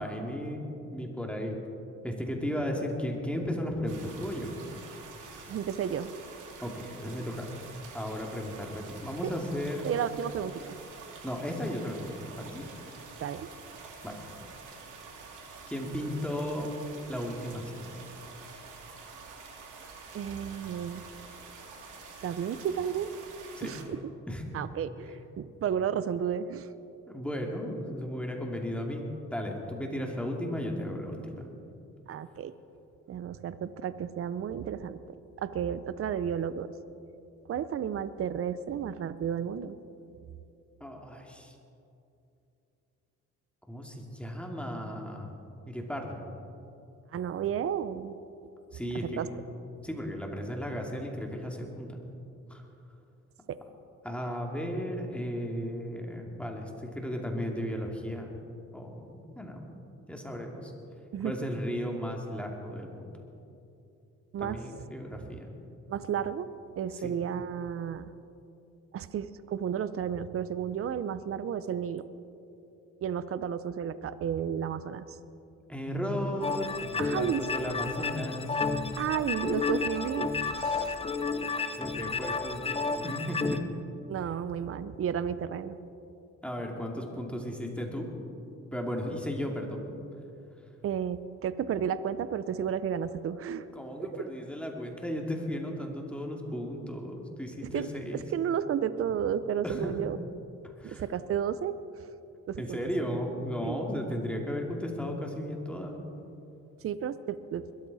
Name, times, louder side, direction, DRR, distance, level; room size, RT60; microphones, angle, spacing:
voice 1, 0.0-1.6 2.0-4.5 6.6-7.5 7.9-9.8 11.2-12.6 14.0-14.2 15.7-16.7 17.1-17.9 23.5-23.7 24.3-24.4 27.1-29.0 29.3-31.4 40.8-41.5 43.7-45.4 45.7-46.2 48.7-49.3 49.8-52.0 52.5-52.6 54.0-58.3 58.7-59.6 60.1-60.7 61.2-63.2 64.4-65.5 66.9-67.1 75.7-78.6 81.7-83.6 86.4-88.1 88.7-89.8 93.7-98.3 99.6-100.0 100.8-101.0 102.6-106.0, equal, 5° left, 0 dB, 2.4 m, -35 dB
sound 1, 3.9-23.8, right 4 dB, 85° right, 2.6 m, -47 dB
voice 2, 5.5-6.1 9.8-10.8 13.2-13.5 20.1-21.0 22.2-23.1 23.6-24.0 24.5-26.7 32.1-32.5 33.1-35.0 35.4-36.7 37.5-39.8 47.1-48.1 49.2-49.3 53.5-53.6 61.1-61.5 64.3-64.6 65.9-66.5 66.8-68.1 68.9-72.1 73.0-75.2 77.0-77.4 79.0-80.3 80.6-81.0 84.1-85.8 90.8-93.7 94.1-94.2 97.6-100.2 100.8-101.8 102.5-102.8 103.6-103.8 106.8-107.7, right 8 dB, 50° right, 14 dB, 0.6 m, -32 dB
sound 2, 76.4-83.6, left 4 dB, 20° left, 0.8 m, -32 dB
21.5 x 13.5 x 4.1 m, 2.8 s
cardioid pair, 90°, 30 cm